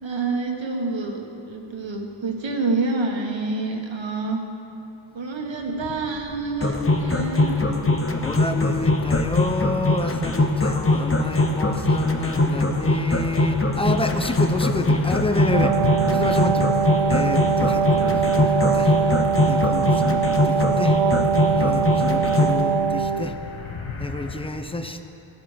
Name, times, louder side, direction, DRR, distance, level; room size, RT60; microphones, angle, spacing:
voice 1, 0.0-4.4 5.1-7.8, right 3 dB, 65° right, 2 dB, 1.7 m, -27 dB
sound 1, 5.4-24.5, left 4 dB, 75° left, 1.5 m, -38 dB
sound 2, 6.6-22.6, left 2 dB, 25° left, 1.1 m, -21 dB
voice 2, 8.2-16.7 17.1-19.2 19.4-21.2 21.5-23.4 24.0-25.0, left 2 dB, 10° left, 8 dB, 0.7 m, -29 dB
Wind instrument woodwind instrument, 15.4-23.4, right 7 dB, 85° right, 0.6 m, -22 dB
16.5 x 11.0 x 5.1 m, 2.7 s
wide cardioid pair, 95°, 48 cm